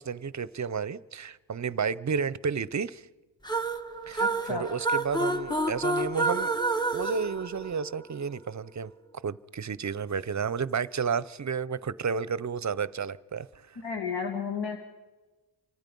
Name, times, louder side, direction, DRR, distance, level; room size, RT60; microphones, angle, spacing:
voice 1, 0.0-3.1 4.1-6.6 6.9-8.9 9.2-13.8, right 6 dB, 45° right, 0.7 m, -32 dB
sound 1, 3.4-8.2, right 2 dB, 10° left, 1.2 m, -29 dB
voice 2, 4.2-4.7 13.8-14.8, left 6 dB, 75° left, 2.1 m, -32 dB
29.0 x 24.0 x 5.4 m
wide cardioid pair, 100°, 41 cm